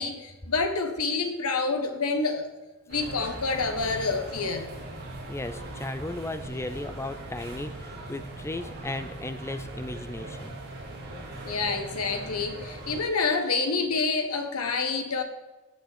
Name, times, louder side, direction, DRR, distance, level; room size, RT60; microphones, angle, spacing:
voice 1, 0.0-2.5 2.9-4.7 11.4-15.2, left 4 dB, 75° left, 6 dB, 1.5 m, -28 dB
sound 1, 2.9-13.0, right 2 dB, 45° right, 3.5 m, -40 dB
voice 2, 5.3-10.6, left 2 dB, 10° left, 11 dB, 0.5 m, -36 dB
14.5 x 8.3 x 4.3 m, 1.1 s
head